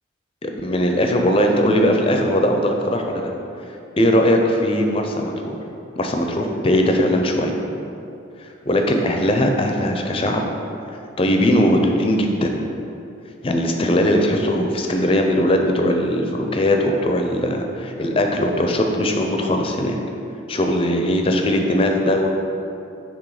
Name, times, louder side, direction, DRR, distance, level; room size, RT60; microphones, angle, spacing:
voice 1, 0.4-3.3 4.0-5.6 6.0-7.5 8.4-10.5 11.2-12.7 13.4-20.0 20.5-22.3, left 1 dB, 25° left, 3 dB, 0.4 m, -19 dB
6.1 x 3.5 x 4.8 m, 2.8 s
head